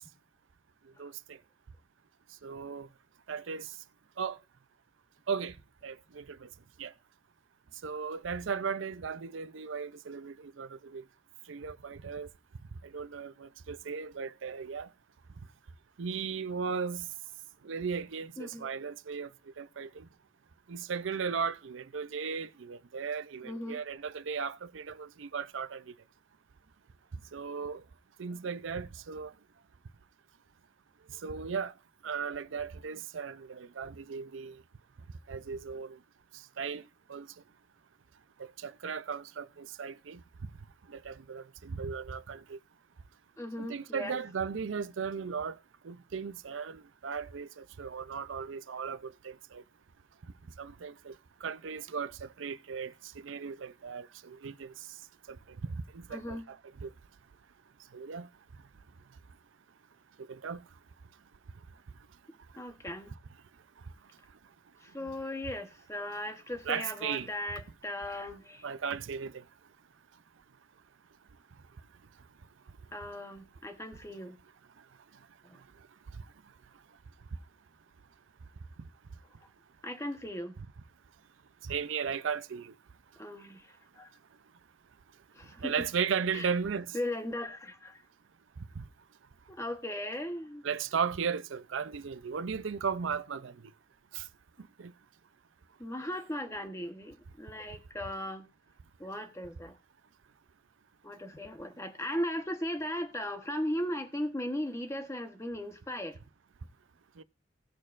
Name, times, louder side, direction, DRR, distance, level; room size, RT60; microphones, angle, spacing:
voice 1, 1.0-1.4 2.4-2.9 3.3-3.7 4.2-4.4 5.3-5.6 5.8-6.5 6.8-6.9 7.8-11.0 11.5-12.3 12.8-14.9 16.0-17.1 17.6-19.3 19.6-20.1 20.7-25.9 27.3-27.8 28.2-29.3 31.1-31.7 32.0-34.6 35.3-36.0 36.3-36.8 37.1-37.3 38.6-40.2 40.9-42.6 43.6-45.6 45.8-49.6 50.6-51.2 51.4-54.9 55.3-56.9 57.9-58.3 60.3-60.6 66.6-67.3 68.6-69.4 76.1-76.2 81.6-82.7 85.6-87.0 88.6-88.8 90.6-93.7 94.1-94.3 94.8-94.9 107.2-107.3, right 6 dB, 80° right, 0.5 m, -36 dB
voice 2, 18.4-18.7 23.4-23.8 43.4-44.2 56.1-56.4 62.6-63.1 64.8-68.7 72.9-74.4 75.4-75.6 79.8-80.6 83.2-84.1 85.3-85.7 86.3-86.5 86.9-88.0 89.5-90.6 95.8-98.5 99.0-99.8 101.0-106.2, left 1 dB, 15° left, 1.1 m, -37 dB
17.5 x 6.4 x 2.5 m
head